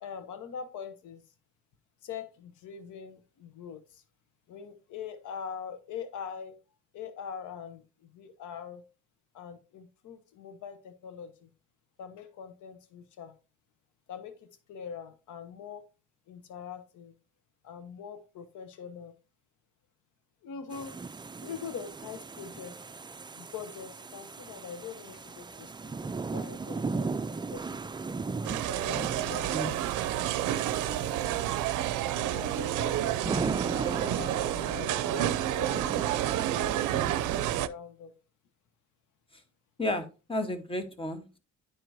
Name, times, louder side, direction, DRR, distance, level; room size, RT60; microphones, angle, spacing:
voice 1, 0.0-1.2 2.0-4.0 4.5-6.5 6.9-8.8 9.3-11.5 12.0-13.3 14.1-15.9 16.3-17.1 17.6-19.1 20.4-21.0 21.4-22.7 23.4-27.8 28.7-29.8 30.5-30.6 30.9-31.5 32.3-33.6 34.0-35.9 36.1-36.8 37.5-38.1, left 7 dB, 75° left, 10 dB, 0.9 m, -43 dB
sound 1, 20.7-37.6, right 4 dB, 15° right, 0.4 m, -38 dB
sound 2, 28.4-37.7, right 12 dB, 85° right, 0.5 m, -30 dB
voice 2, 29.4-29.8 39.8-41.4, left 1 dB, 20° left, 9 dB, 1.2 m, -33 dB
10.5 x 4.5 x 2.7 m, 0.32 s
cardioid pair, 90°, 30 cm